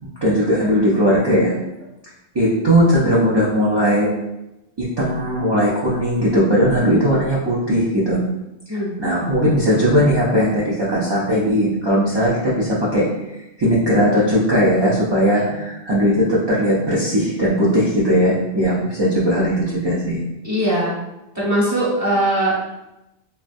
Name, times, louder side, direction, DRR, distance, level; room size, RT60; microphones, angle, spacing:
voice 1, 0.0-1.6 2.3-4.1 4.8-8.2 8.7-13.1 13.6-20.2, equal, 40° right, -7 dB, 0.4 m, -18 dB
voice 2, 20.4-20.9 21.3-22.6, right 1 dB, 15° right, -8 dB, 1.1 m, -20 dB
3.2 x 2.2 x 2.5 m, 0.92 s
omnidirectional pair, 1.1 m